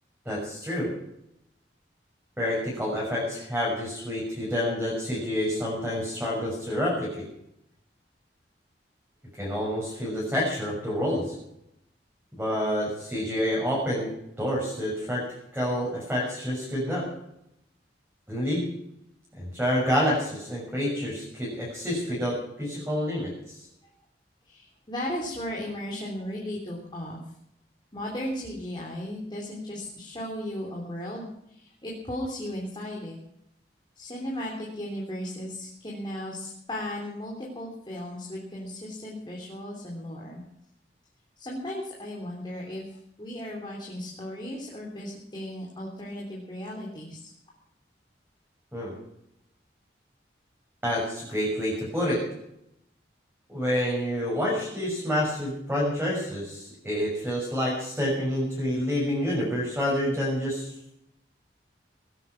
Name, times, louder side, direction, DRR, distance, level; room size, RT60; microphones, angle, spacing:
voice 1, 0.2-0.9 2.4-7.2 9.4-11.3 12.4-14.1 14.4-15.2 15.5-17.1 18.3-18.6 19.4-23.6 48.7-48.9 50.8-52.2 53.5-60.7, equal, 10° right, -5 dB, 6.3 m, -28 dB
voice 2, 24.5-27.2 27.9-33.2 34.0-40.4 41.4-47.3, left 1 dB, 25° left, -3 dB, 3.4 m, -36 dB
19.0 x 11.5 x 5.9 m, 0.78 s
head